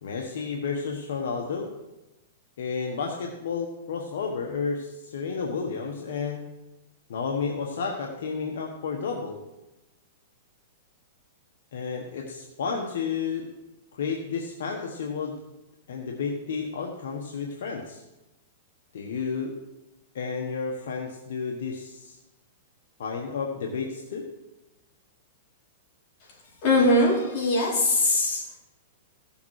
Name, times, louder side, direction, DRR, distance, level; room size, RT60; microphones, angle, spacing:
voice 1, 0.0-1.7 2.6-6.4 7.1-9.4 11.7-13.5 13.9-15.4 15.9-18.0 18.9-19.5 20.1-22.2 23.0-24.2, left 5 dB, 75° left, 1 dB, 1.4 m, -31 dB
voice 2, 26.6-28.6, left 1 dB, 45° left, -3 dB, 4.4 m, -21 dB
16.0 x 7.1 x 4.9 m, 1.0 s
hypercardioid pair, 140°, 0 cm